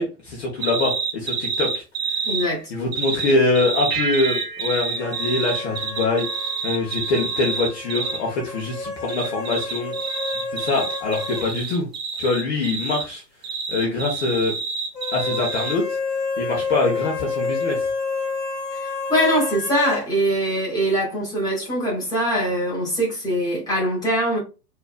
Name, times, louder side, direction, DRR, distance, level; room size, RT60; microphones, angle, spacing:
voice 1, 0.0-1.8 2.1-2.2 2.7-6.3 6.6-9.9 10.5-11.9 12.2-13.2 13.7-14.5 15.1-16.0 16.4-17.8, left 3 dB, 40° left, 1.2 m, -24 dB
sound 1, 0.6-2.5 2.9-8.2 9.1-13.1 13.4-15.7, right 5 dB, 40° right, 0.9 m, -28 dB
voice 2, 2.2-2.7 18.8-24.4, equal, 10° left, 2.0 m, -22 dB
sound 2, 3.9-6.7, right 3 dB, 75° right, 0.9 m, -32 dB
sound 3, 5.0-11.5 11.8-11.9 15.0-20.1, left 4 dB, 80° left, 1.3 m, -30 dB
4.3 x 2.8 x 2.2 m
figure-of-eight pair, 110°, 48 cm